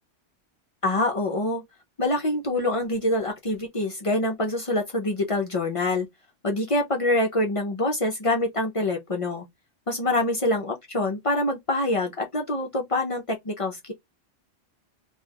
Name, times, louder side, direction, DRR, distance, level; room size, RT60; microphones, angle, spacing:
voice 1, 0.8-1.6 2.0-6.1 6.4-9.4 9.9-13.9, left 2 dB, 45° left, 0.4 m, -25 dB
2.3 x 2.2 x 3.3 m
omnidirectional pair, 1.2 m